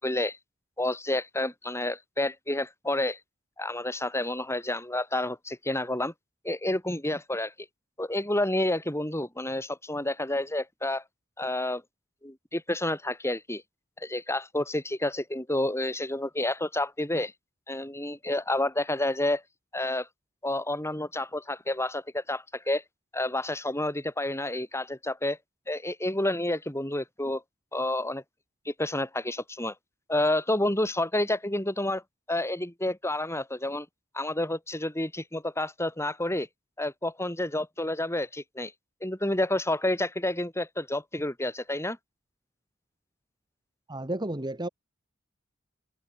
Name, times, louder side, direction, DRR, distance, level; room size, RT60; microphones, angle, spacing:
voice 1, 0.0-0.4 0.8-3.2 3.6-6.1 6.4-7.5 8.0-11.0 11.4-11.8 12.2-13.6 14.0-17.3 17.7-19.4 19.7-20.1 20.4-22.8 23.1-25.4 25.7-27.4 27.7-28.2 28.6-29.7 30.1-32.0 32.3-33.9 34.1-36.5 36.8-38.7 39.0-42.0, left 1 dB, 15° left, 6.7 m, -29 dB
voice 2, 43.9-44.7, right 1 dB, 20° right, 2.0 m, -32 dB
head